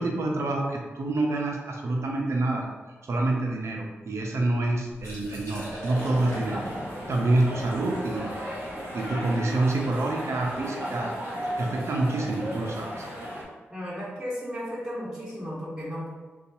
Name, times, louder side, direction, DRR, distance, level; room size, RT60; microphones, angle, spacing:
voice 1, 0.0-2.6 3.0-6.7 7.1-8.3 8.9-11.1 11.6-13.2, right 2 dB, 70° right, 0 dB, 0.5 m, -27 dB
Liquid, 4.9-10.7, equal, 70° left, 1.0 m, -40 dB
sound 1, 5.9-13.4, equal, 50° right, 0.9 m, -35 dB
voice 2, 13.7-16.1, equal, 15° right, -11 dB, 1.2 m, -34 dB
2.6 x 2.3 x 2.6 m, 1.3 s
supercardioid pair, 40°, 5 cm